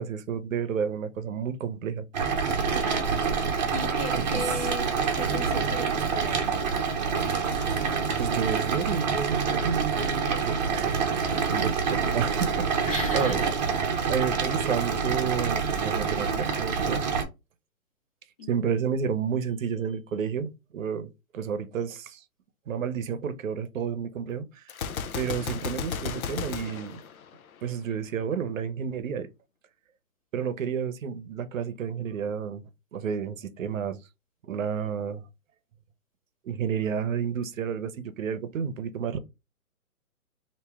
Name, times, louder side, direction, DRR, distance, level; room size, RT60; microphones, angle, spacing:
voice 1, 0.0-2.0 4.1-4.2 8.2-11.0 11.5-12.9 13.1-13.4 13.9-17.0 18.5-22.2 22.7-24.6 25.2-27.0 27.6-29.3 30.3-32.6 32.9-34.0 34.4-35.2 36.4-39.2, right 7 dB, 60° right, 0.8 m, -31 dB
sound 1, 2.1-17.2, right 5 dB, 30° right, 0.7 m, -27 dB
voice 2, 2.7-3.2 3.5-4.9 5.1-6.9 12.9-13.5 18.4-18.9, left 2 dB, 25° left, 0.5 m, -37 dB
Gunshot gunfire, 24.7-27.8, left 6 dB, 70° left, 0.6 m, -34 dB
3.0 x 2.7 x 3.5 m
hypercardioid pair, 160°, 45 cm